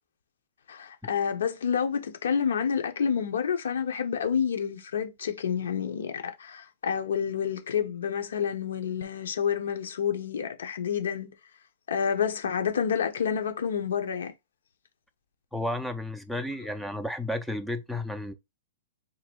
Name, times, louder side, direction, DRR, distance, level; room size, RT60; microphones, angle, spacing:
voice 1, 0.7-11.3 11.9-14.3, left 7 dB, 80° left, 1.1 m, -29 dB
voice 2, 15.5-18.3, left 1 dB, ahead, 0.4 m, -32 dB
3.8 x 2.7 x 4.5 m
hypercardioid pair, 175°, 0 cm